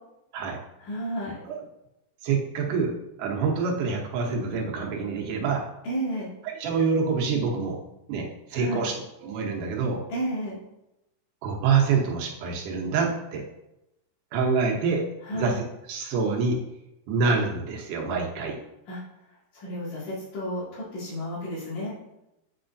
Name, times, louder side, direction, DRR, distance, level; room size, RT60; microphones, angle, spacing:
voice 1, 0.8-1.4 5.8-6.3 8.5-8.9 10.1-10.6 15.3-15.6 18.9-19.0 19.5-21.9, equal, 80° left, -8 dB, 3.7 m, -32 dB
voice 2, 2.2-2.9 3.2-5.6 6.6-7.8 8.1-8.9 9.2-10.0 11.4-13.4 14.3-15.0 15.3-16.6 17.1-18.6, right 5 dB, 80° right, 0 dB, 2.5 m, -26 dB
7.7 x 4.9 x 2.6 m, 0.90 s
omnidirectional pair, 3.6 m